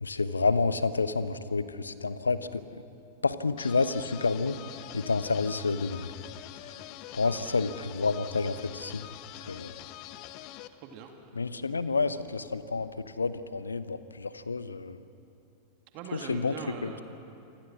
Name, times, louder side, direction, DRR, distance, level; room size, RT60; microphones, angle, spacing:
voice 1, 0.0-2.6 3.2-4.5 4.9-6.1 7.1-9.1 9.5-9.7 11.4-15.0 16.1-16.9, left 4 dB, 75° left, 14 dB, 0.9 m, -29 dB
sound 1, 3.6-10.7, left 14 dB, 40° left, 1.0 m, -45 dB
voice 2, 7.2-7.6 10.7-11.4 15.9-17.0, right 6 dB, 40° right, 4 dB, 2.3 m, -42 dB
27.5 x 25.0 x 6.2 m, 2.6 s
figure-of-eight pair, 90°, 0 cm